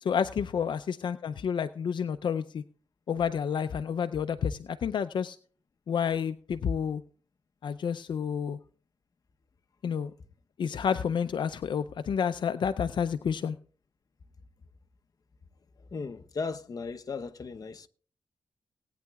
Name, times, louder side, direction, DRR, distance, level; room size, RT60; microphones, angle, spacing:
voice 1, 0.0-2.6 3.1-5.4 5.9-7.0 7.6-8.6 9.8-10.1 10.6-13.6, left 7 dB, 70° left, 0.5 m, -30 dB
voice 2, 15.8-17.9, left 4 dB, 45° left, 0.9 m, -37 dB
19.5 x 9.3 x 2.4 m
wide cardioid pair, 95°, 8 cm